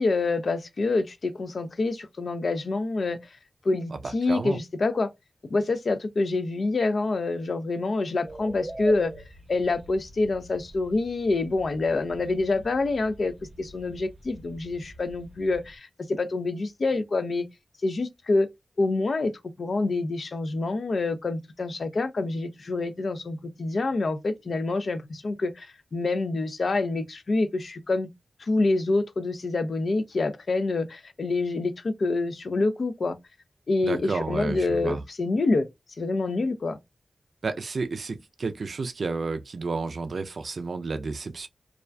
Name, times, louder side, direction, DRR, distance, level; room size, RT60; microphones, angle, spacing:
voice 1, 0.0-3.2 3.6-5.1 5.5-9.1 9.5-17.5 17.8-18.5 18.8-19.3 19.6-28.1 28.4-33.2 33.7-35.7 36.0-36.8, left 3 dB, 70° left, 0.4 m, -26 dB
voice 2, 3.9-4.6 33.8-35.0 37.4-41.5, right 4 dB, 75° right, 0.3 m, -31 dB
sound 1, 8.2-15.8, right 2 dB, 35° right, 0.7 m, -43 dB
2.3 x 2.2 x 2.4 m
cardioid pair, 60°, 0 cm